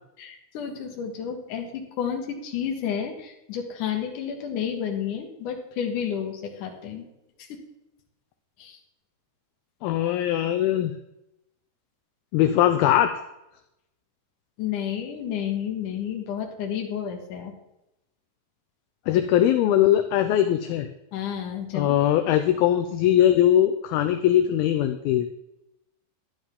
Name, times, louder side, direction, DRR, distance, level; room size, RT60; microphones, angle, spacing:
voice 1, 0.2-7.0 7.5-7.6 8.6-8.8 14.6-17.5 19.1-19.2 21.1-21.9, left 8 dB, 60° left, 2 dB, 2.8 m, -31 dB
voice 2, 9.8-10.9 12.3-13.1 19.1-20.9 21.7-25.3, left 11 dB, 80° left, 8 dB, 2.4 m, -21 dB
12.0 x 11.0 x 3.6 m, 0.88 s
omnidirectional pair, 4.7 m